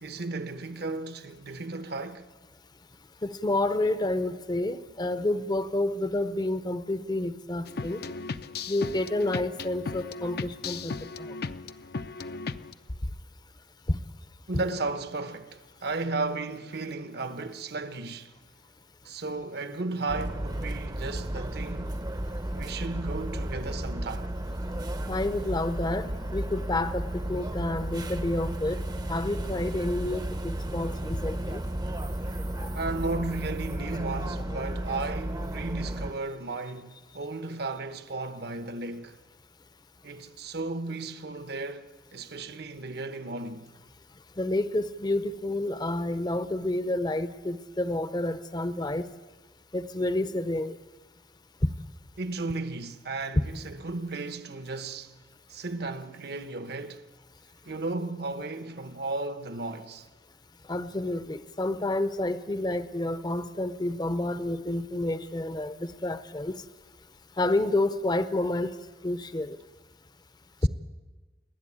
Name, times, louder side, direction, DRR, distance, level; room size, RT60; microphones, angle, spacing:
voice 1, 0.0-2.3 14.5-18.3 19.0-22.0 22.5-24.3 32.7-39.2 40.0-43.7 52.2-55.2 55.5-57.1 57.6-60.1 65.7-65.9 70.6-70.7, right 3 dB, 65° right, 1.1 m, -34 dB
voice 2, 3.2-8.0 8.7-11.3 13.9-14.0 25.1-28.8 29.1-31.6 32.6-32.7 33.8-33.9 44.4-49.0 49.7-50.7 51.6-51.7 53.4-53.5 60.7-66.5 67.4-68.7 69.0-69.6 70.6-70.7, left 2 dB, 25° left, 0.7 m, -29 dB
sound 1, 7.7-12.7, left 4 dB, 60° left, 0.7 m, -36 dB
sound 2, 20.1-36.1, right 1 dB, 25° right, 0.7 m, -33 dB
29.5 x 11.0 x 8.6 m
head